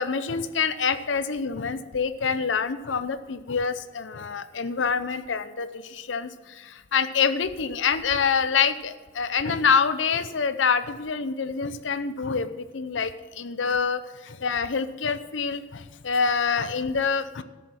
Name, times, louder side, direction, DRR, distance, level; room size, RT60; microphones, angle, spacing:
voice 1, 0.0-17.4, left 5 dB, 70° left, 12 dB, 0.7 m, -26 dB
13.0 x 7.2 x 5.9 m, 1.3 s
head